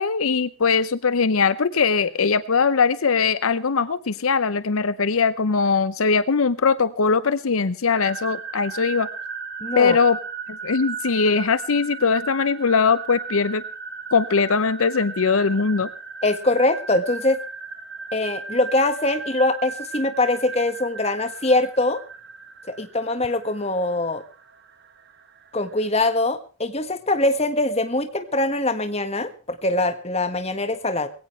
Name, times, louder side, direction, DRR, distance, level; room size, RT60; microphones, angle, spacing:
voice 1, 0.0-9.1 9.8-10.2 10.5-13.6 14.1-15.9, left 5 dB, 75° left, 15 dB, 0.7 m, -21 dB
sound 1, 7.9-25.9, right 5 dB, 50° right, 1.5 m, -36 dB
voice 2, 9.6-10.0 16.2-17.4 18.1-22.0 22.7-24.2 25.5-31.1, left 2 dB, 30° left, 9 dB, 1.6 m, -23 dB
21.0 x 17.0 x 3.3 m, 0.35 s
head